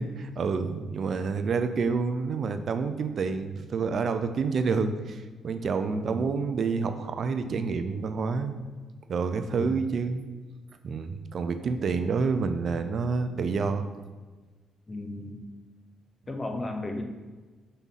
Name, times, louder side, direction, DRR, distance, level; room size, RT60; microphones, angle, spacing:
voice 1, 0.0-8.6 9.1-10.2 10.8-13.8, right 5 dB, 55° right, 9 dB, 0.5 m, -28 dB
voice 2, 5.9-6.2 9.5-9.8 14.9-15.4 16.3-17.0, left 2 dB, 25° left, 4 dB, 0.8 m, -35 dB
5.6 x 3.6 x 5.6 m, 1.3 s
cardioid pair, 90°, 0 cm